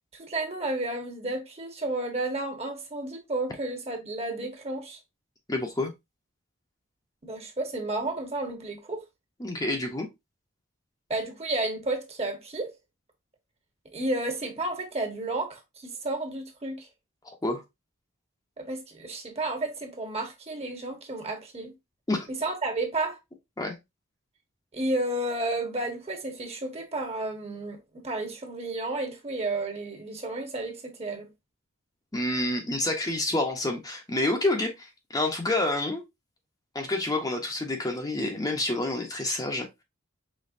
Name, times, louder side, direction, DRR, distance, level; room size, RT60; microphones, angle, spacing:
voice 1, 0.1-5.0 7.2-9.0 11.1-12.7 13.9-16.9 18.6-21.7 22.4-23.2 24.7-31.3, right 2 dB, 30° right, 1.2 m, -32 dB
voice 2, 5.5-5.9 9.4-10.1 17.4-17.6 22.1-22.3 23.6-23.8 32.1-36.0 36.7-39.8, left 2 dB, 20° left, 0.8 m, -28 dB
5.3 x 3.3 x 2.6 m
head